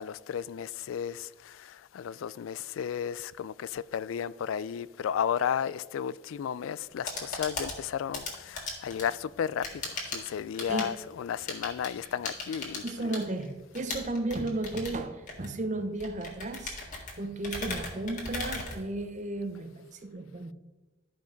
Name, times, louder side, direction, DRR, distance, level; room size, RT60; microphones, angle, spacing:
voice 1, 0.0-12.8, left 8 dB, 75° left, 0.3 m, -33 dB
sound 1, 6.9-19.4, left 3 dB, 40° left, 1.8 m, -39 dB
voice 2, 12.8-16.8 17.2-20.5, right 2 dB, 35° right, 0.7 m, -34 dB
12.0 x 5.3 x 5.1 m
head